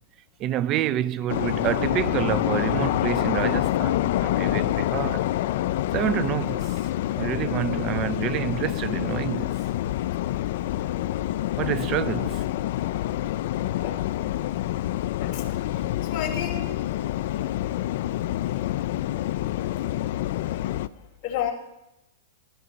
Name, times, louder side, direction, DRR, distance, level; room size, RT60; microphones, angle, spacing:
voice 1, 0.4-5.2 5.9-6.7 7.2-9.5 11.6-12.4, right 11 dB, 30° right, 0.5 m, -28 dB
sound 1, 1.3-20.9, left 14 dB, 55° left, 0.4 m, -27 dB
voice 2, 15.2-15.8 16.1-16.7 19.3-19.4 20.6-20.7 21.2-21.5, left 9 dB, 30° left, 2.8 m, -32 dB
16.0 x 14.0 x 4.0 m
hypercardioid pair, 155°, 0 cm